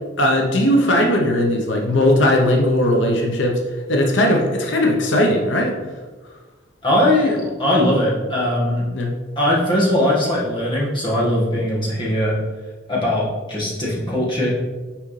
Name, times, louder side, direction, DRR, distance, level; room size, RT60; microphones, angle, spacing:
voice 1, 0.2-3.6 3.9-5.7 8.9-9.1, left 1 dB, 85° left, 1 dB, 0.8 m, -18 dB
voice 2, 6.8-8.8 9.3-12.4 12.9-14.5, left 1 dB, 25° left, -6 dB, 1.6 m, -20 dB
6.0 x 4.9 x 3.2 m, 1.3 s
head